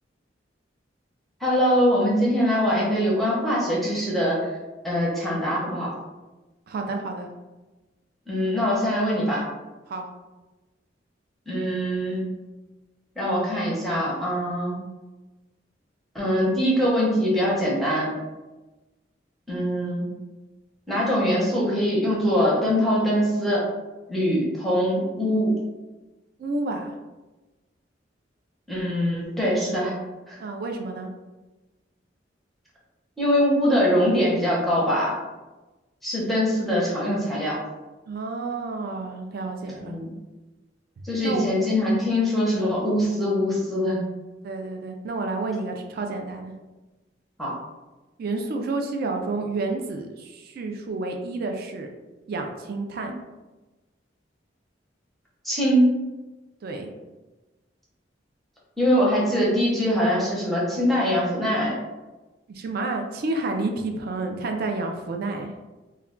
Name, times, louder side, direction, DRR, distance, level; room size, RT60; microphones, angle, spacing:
voice 1, 1.4-4.4 4.8-5.9 8.3-9.4 11.5-12.3 13.2-14.8 16.1-18.1 19.5-20.1 20.9-23.6 24.1-25.5 28.7-30.0 30.3-30.4 33.2-35.2 36.0-37.6 39.8-40.1 41.0-44.0 47.4-47.5 55.4-56.0 58.8-61.7, equal, ahead, -6 dB, 0.6 m, -23 dB
voice 2, 6.7-7.3 9.9-10.1 26.4-26.9 30.4-31.1 38.1-39.9 41.2-41.6 44.4-46.5 48.2-51.9 52.3-53.1 56.6-56.9 62.5-65.5, right 3 dB, 55° right, 3 dB, 0.3 m, -30 dB
2.2 x 2.2 x 3.6 m, 1.1 s
head